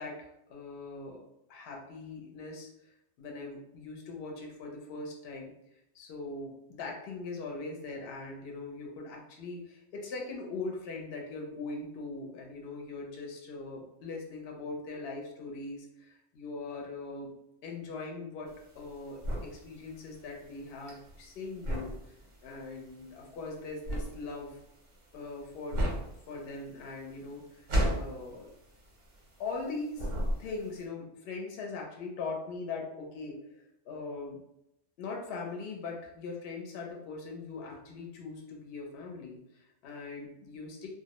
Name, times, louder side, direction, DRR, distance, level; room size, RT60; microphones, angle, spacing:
voice 1, 0.0-5.5 5.9-17.3 17.6-22.1 22.4-24.6 25.1-25.8 26.3-27.7 27.9-28.5 29.4-30.1 30.4-34.4 35.0-40.9, left 3 dB, 60° left, 0 dB, 0.7 m, -41 dB
sound 1, 18.5-29.7 29.9-30.8, equal, 50° right, 0.6 m, -34 dB
2.2 x 2.0 x 2.8 m, 0.81 s
omnidirectional pair, 1.3 m